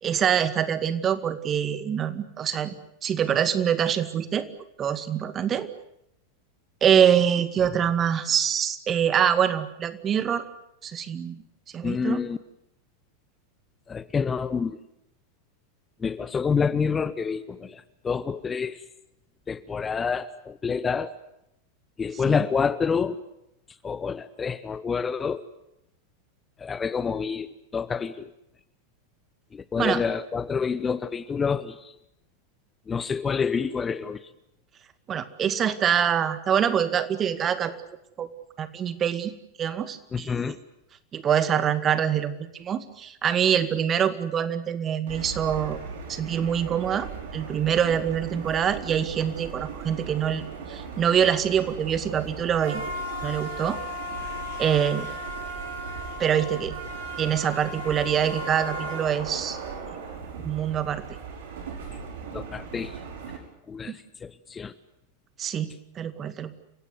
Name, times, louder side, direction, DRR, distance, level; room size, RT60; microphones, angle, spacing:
voice 1, 0.0-2.7 3.0-4.5 4.8-5.7 6.8-10.4 10.8-11.4 11.7-12.2 22.3-22.4 29.8-30.0 35.1-37.7 38.2-38.3 38.6-39.3 39.6-40.3 41.1-45.8 46.1-52.8 53.2-53.8 54.6-55.1 56.2-56.7 57.2-59.6 60.4-61.0 63.9-64.0 65.4-66.5, right 8 dB, 30° right, 12 dB, 2.0 m, -25 dB
voice 2, 11.8-12.4 13.9-14.8 16.0-18.8 19.5-21.1 22.0-23.2 23.8-25.5 26.6-28.3 29.5-31.9 32.9-34.3 40.1-40.6 62.3-63.0 63.7-64.7, left 6 dB, 20° left, 15 dB, 1.1 m, -28 dB
sound 1, 45.1-63.4, right 3 dB, 65° right, 5.9 m, -36 dB
29.5 x 16.5 x 9.7 m, 0.82 s
figure-of-eight pair, 90°, 0 cm